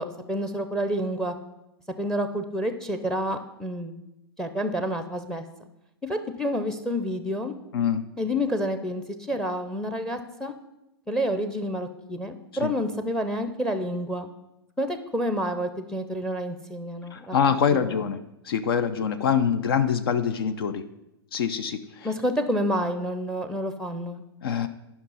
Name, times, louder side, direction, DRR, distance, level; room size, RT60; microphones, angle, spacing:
voice 1, 0.0-1.4 2.0-3.9 4.4-5.4 6.0-7.5 8.2-10.5 11.1-14.3 14.8-17.4 17.7-18.0 22.0-24.2, equal, 5° left, 9 dB, 0.6 m, -29 dB
voice 2, 7.7-8.0 12.6-12.7 17.1-18.2 18.4-20.8 21.3-22.1 24.4-24.7, left 7 dB, 60° left, 11 dB, 0.6 m, -24 dB
10.5 x 5.6 x 5.6 m, 0.90 s
hypercardioid pair, 115°, 14 cm